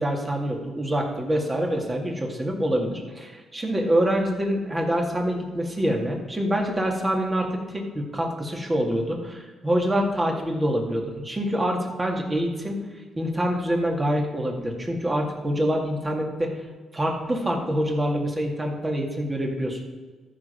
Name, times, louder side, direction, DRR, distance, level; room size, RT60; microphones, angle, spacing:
voice 1, 0.0-12.8 13.2-16.6 16.9-19.8, equal, 20° right, 1 dB, 2.2 m, -26 dB
13.5 x 5.2 x 5.2 m, 1.4 s
cardioid pair, 80°, 0 cm